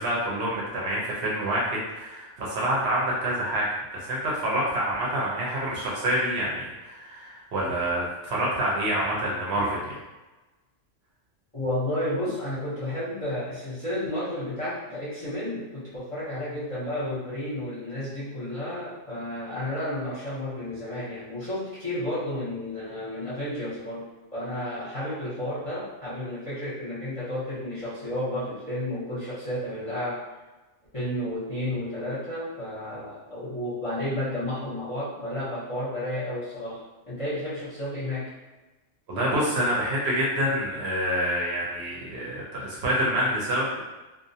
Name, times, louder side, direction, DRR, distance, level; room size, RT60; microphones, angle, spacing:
voice 1, 0.0-10.0 39.1-43.8, right 1 dB, 65° right, -5 dB, 0.8 m, -27 dB
voice 2, 11.5-30.3 30.9-38.3, left 1 dB, 35° left, -11 dB, 0.7 m, -32 dB
2.4 x 2.1 x 2.6 m, 1.1 s
omnidirectional pair, 1.3 m